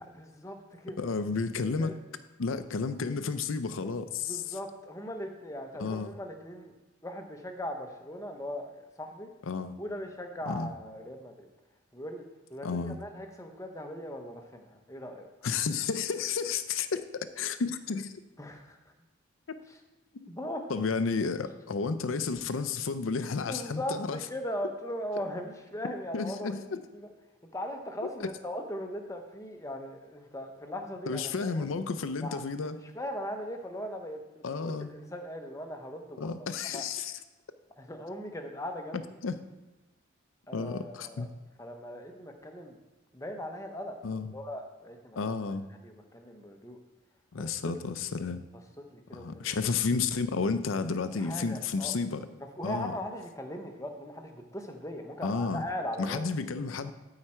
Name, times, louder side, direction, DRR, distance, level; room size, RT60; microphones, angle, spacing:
voice 1, 0.0-1.0 1.8-2.0 3.8-3.9 4.3-6.7 7.0-9.3 9.8-11.5 11.9-12.2 12.5-15.3 18.4-18.8 20.3-20.7 23.3-26.6 26.9-27.1 27.5-31.2 31.5-31.6 32.2-32.4 32.9-36.5 36.7-36.8 37.8-39.0 40.5-41.3 41.6-42.8 43.1-45.4 45.8-46.8 47.4-47.5 48.9-49.5 51.2-51.9 52.6-56.2, equal, 15° left, 4 dB, 0.8 m, -39 dB
voice 2, 1.0-2.0 2.4-4.6 5.8-6.1 9.5-9.8 10.5-10.7 12.6-13.0 15.4-18.2 19.5-19.6 20.1-20.3 20.7-24.2 26.1-26.8 28.0-28.3 31.1-32.8 34.4-34.9 36.2-37.2 39.2-39.4 40.5-41.3 44.0-44.3 45.2-45.7 47.3-48.4 49.1-52.3 52.6-52.9 55.2-55.6 56.0-56.9, left 4 dB, 80° left, 11 dB, 0.5 m, -32 dB
12.5 x 4.8 x 4.4 m, 1.1 s
head